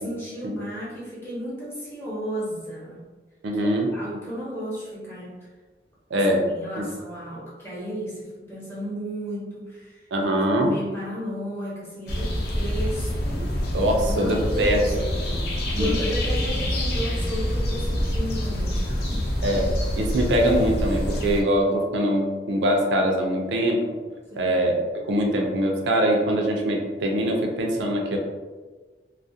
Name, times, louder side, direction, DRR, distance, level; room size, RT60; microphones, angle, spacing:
voice 1, 0.0-3.0 3.5-5.5 6.2-6.3 6.5-10.3 10.6-13.5 14.0-15.2 15.7-19.3 24.3-24.6, equal, 15° left, -8 dB, 0.6 m, -33 dB
voice 2, 3.4-3.9 6.1-6.4 6.8-6.9 10.1-10.7 13.7-14.8 15.8-15.9 19.4-19.7 20.0-23.8 24.4-24.8 25.1-28.2, right 1 dB, 85° right, 1 dB, 0.4 m, -23 dB
sound 1, 12.1-21.4, equal, 60° left, 0.4 m, -26 dB
2.3 x 2.0 x 2.6 m, 1.3 s
head